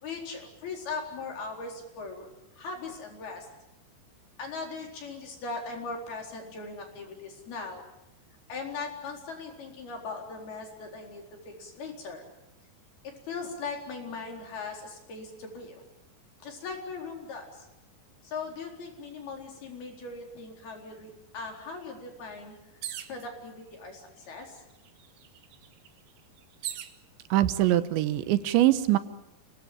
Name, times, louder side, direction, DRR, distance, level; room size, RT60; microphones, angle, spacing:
voice 1, 0.0-2.3 2.6-3.5 4.4-7.9 8.5-12.2 13.0-15.8 16.4-17.7 18.2-22.6 23.1-24.6, left 4 dB, 60° left, 1 dB, 6.0 m, -39 dB
sound 1, 22.8-23.3 24.2-24.3 24.6-27.0 27.8-28.3, right 11 dB, 70° right, 3.0 m, -40 dB
voice 2, 27.3-29.0, right 14 dB, 90° right, 12 dB, 3.4 m, -23 dB
28.0 x 19.0 x 8.7 m, 0.90 s
omnidirectional pair, 5.0 m